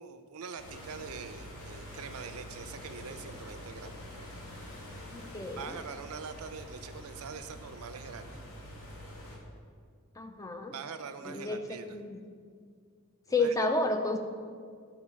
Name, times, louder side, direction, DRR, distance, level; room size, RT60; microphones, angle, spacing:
voice 1, 0.0-4.0 5.6-8.4 10.7-12.0 13.3-13.5, right 6 dB, 90° right, 10 dB, 0.6 m, -43 dB
sound 1, 0.6-9.4, left 1 dB, 80° left, 1.8 m, -46 dB
voice 2, 5.1-5.7 10.2-10.7 11.2-12.2 13.3-14.2, left 2 dB, 15° left, 5 dB, 0.4 m, -31 dB
11.0 x 3.9 x 5.8 m, 2.1 s
head